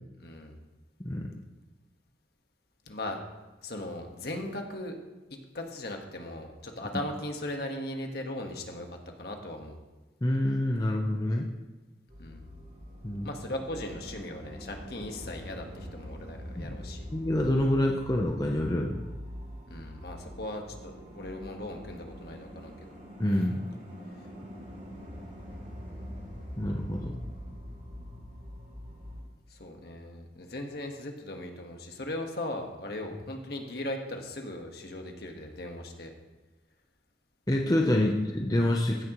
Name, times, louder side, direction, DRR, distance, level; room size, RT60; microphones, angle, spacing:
voice 1, 0.2-0.6 2.9-3.2 3.6-5.0 5.5-9.8 12.2-12.4 13.2-17.0 19.7-23.0 29.5-36.1 38.0-38.1, left 1 dB, 55° left, 3 dB, 1.5 m, -38 dB
voice 2, 10.2-11.5 13.0-13.3 16.6-16.8 17.1-19.0 23.2-23.7 26.6-27.1 37.5-39.0, left 1 dB, 20° left, 0 dB, 0.7 m, -27 dB
sound 1, 12.1-29.2, equal, 40° right, 3.0 m, -44 dB
15.5 x 10.5 x 3.1 m, 1.1 s
head